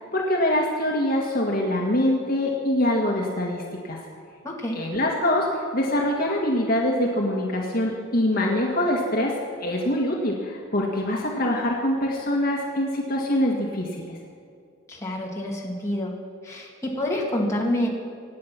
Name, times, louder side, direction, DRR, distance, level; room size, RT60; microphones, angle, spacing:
voice 1, 0.1-4.0 4.7-9.3 9.6-14.1, left 1 dB, 45° left, -1 dB, 1.9 m, -24 dB
voice 2, 4.4-4.8 14.9-16.2 16.4-17.9, left 1 dB, 15° left, -3 dB, 2.5 m, -27 dB
25.0 x 9.6 x 6.0 m, 2.2 s
head